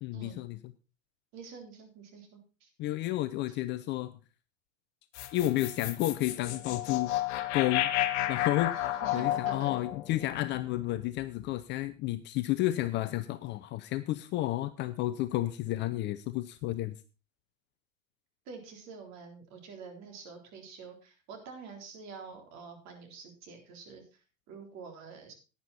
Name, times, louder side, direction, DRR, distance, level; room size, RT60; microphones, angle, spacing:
voice 1, 0.0-0.6 2.8-4.2 5.3-7.1 7.5-7.9 8.3-16.9, left 15 dB, 30° left, 12 dB, 0.5 m, -31 dB
voice 2, 1.3-2.7 8.7-9.7 18.5-25.3, right 5 dB, 45° right, 4 dB, 3.8 m, -47 dB
sound 1, 5.1-11.5, left 13 dB, 55° left, 1.3 m, -32 dB
11.5 x 9.6 x 4.1 m, 0.32 s
hypercardioid pair, 110°, 40 cm